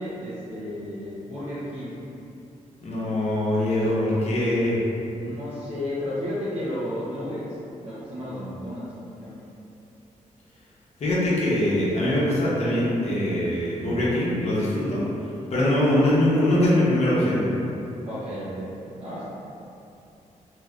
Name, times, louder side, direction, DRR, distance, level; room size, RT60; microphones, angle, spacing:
voice 1, 0.0-2.0 5.1-9.4 18.1-19.2, left 1 dB, 45° right, -11 dB, 0.7 m, -33 dB
voice 2, 2.8-4.8 11.0-15.0 15.5-17.4, left 1 dB, 50° left, -7 dB, 0.8 m, -22 dB
3.1 x 2.7 x 2.4 m, 2.8 s
wide cardioid pair, 115°, 14 cm